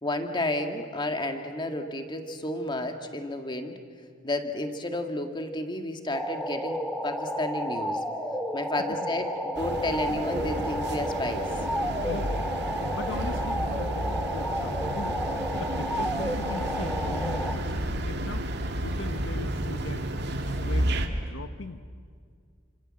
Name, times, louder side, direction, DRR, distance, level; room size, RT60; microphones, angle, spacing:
voice 1, 0.0-3.7 4.2-8.0 8.5-11.5, left 1 dB, 25° left, 5 dB, 1.9 m, -31 dB
sound 1, 6.1-17.5, equal, ahead, 1.9 m, -32 dB
sound 2, 9.5-21.1, right 1 dB, 60° right, 2.2 m, -31 dB
voice 2, 11.9-15.2 15.6-18.5 18.8-20.1 20.4-21.8, left 3 dB, 80° left, 10 dB, 1.0 m, -40 dB
29.5 x 26.0 x 7.7 m, 2.1 s
head